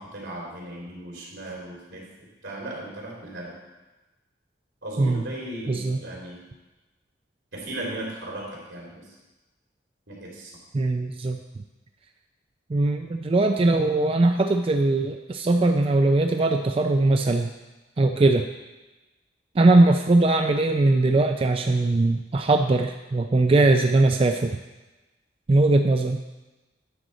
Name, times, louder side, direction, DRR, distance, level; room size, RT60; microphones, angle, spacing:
voice 1, 0.0-3.5 4.8-6.4 7.5-9.2 10.1-10.5, right 1 dB, 80° right, -3 dB, 3.0 m, -37 dB
voice 2, 5.7-6.0 10.7-11.4 12.7-17.5 18.0-18.5 19.6-24.6 25.5-26.2, right 2 dB, 30° right, 5 dB, 0.3 m, -20 dB
9.9 x 4.0 x 6.4 m, 1.1 s
head